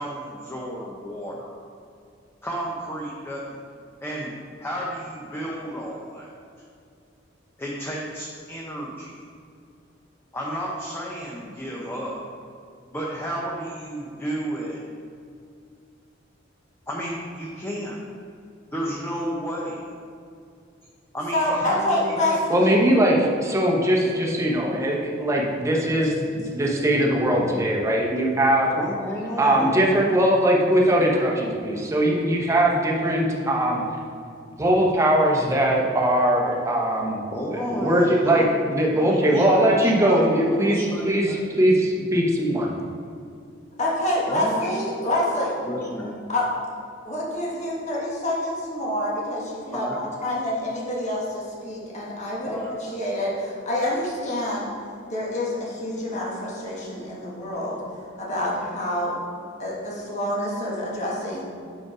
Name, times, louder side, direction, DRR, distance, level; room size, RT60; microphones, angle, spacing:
voice 1, 0.0-1.6 2.4-3.6 4.0-4.3 4.6-6.3 7.6-9.2 10.3-12.2 12.9-14.8 16.9-18.0 18.7-19.8 21.1-22.4 28.8-29.8 30.1-30.2 37.3-38.5 38.9-41.4 44.3-44.7 45.6-46.2 49.7-50.0 52.4-52.7, equal, 10° left, -3 dB, 0.7 m, -32 dB
voice 2, 21.3-22.8 43.8-45.6 46.3-46.5 47.0-54.7 55.1-59.1 59.6-61.4, left 1 dB, 40° left, -5 dB, 1.5 m, -27 dB
voice 3, 22.5-28.7 29.4-33.8 34.6-37.2 37.5-38.4 38.7-40.8 41.0-42.7, right 1 dB, 15° right, -2 dB, 1.0 m, -21 dB
6.2 x 4.9 x 4.9 m, 2.4 s
head